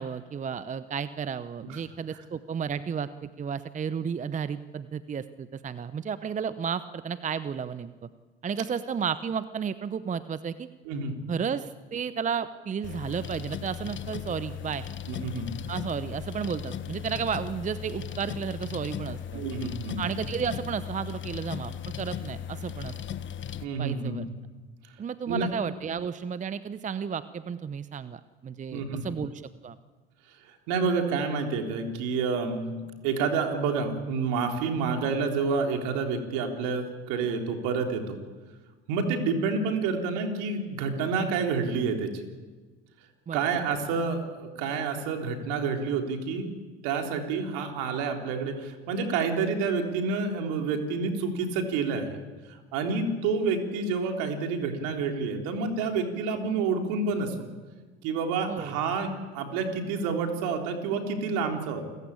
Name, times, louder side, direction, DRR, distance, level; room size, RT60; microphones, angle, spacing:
voice 1, 0.0-8.1 8.4-10.7 11.3-14.9 15.7-19.4 20.0-22.9 23.8-24.3 25.0-29.8 43.3-43.4 58.5-58.7, right 7 dB, 20° right, 14 dB, 0.8 m, -33 dB
sound 1, 12.8-23.6, left 9 dB, 35° left, 1.3 m, -37 dB
voice 2, 15.1-15.5 19.3-20.1 23.6-24.2 25.3-25.5 28.7-29.1 30.4-32.7 33.0-38.2 38.9-42.2 43.3-46.5 46.8-52.2 52.5-57.4 58.0-61.8, right 4 dB, 60° right, 3 dB, 3.8 m, -29 dB
29.0 x 15.0 x 8.6 m, 1.3 s
hypercardioid pair, 75°, 33 cm